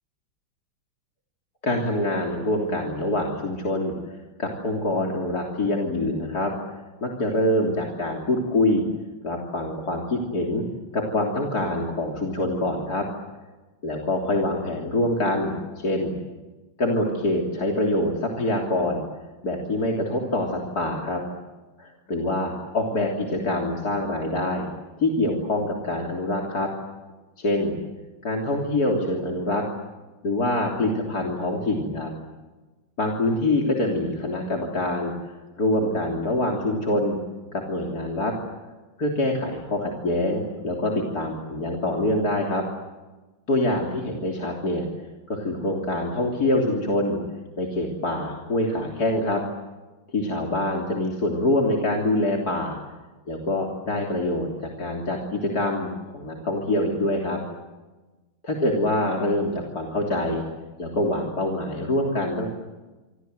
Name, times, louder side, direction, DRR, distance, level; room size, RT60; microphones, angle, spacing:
voice 1, 1.6-8.8 9.2-10.6 10.9-13.1 13.8-16.2 16.8-19.0 19.4-21.2 21.8-24.7 25.0-26.7 27.4-27.8 28.2-29.6 30.2-32.1 33.0-37.2 37.5-38.3 39.0-42.6 43.5-44.9 45.3-47.2 47.6-49.4 50.1-52.8 53.3-57.4 58.4-60.4 60.8-62.5, left 1 dB, 50° left, -1 dB, 3.8 m, -25 dB
27.5 x 25.5 x 8.0 m, 1.2 s
omnidirectional pair, 2.1 m